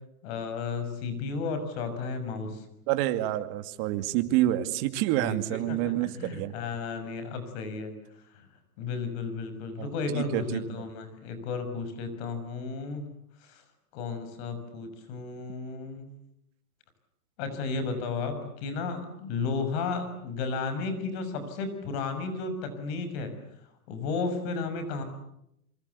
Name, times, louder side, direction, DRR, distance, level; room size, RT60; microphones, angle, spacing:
voice 1, 0.2-2.7 5.2-7.9 8.3-8.5 8.8-13.0 13.4-13.6 13.9-16.1 17.4-23.3 23.9-25.0, left 4 dB, 45° left, 9 dB, 6.1 m, -33 dB
voice 2, 2.9-6.5 9.8-9.9 10.1-10.8, right 14 dB, 40° right, 9 dB, 2.4 m, -28 dB
27.0 x 25.0 x 8.3 m, 0.79 s
hypercardioid pair, 140°, 43 cm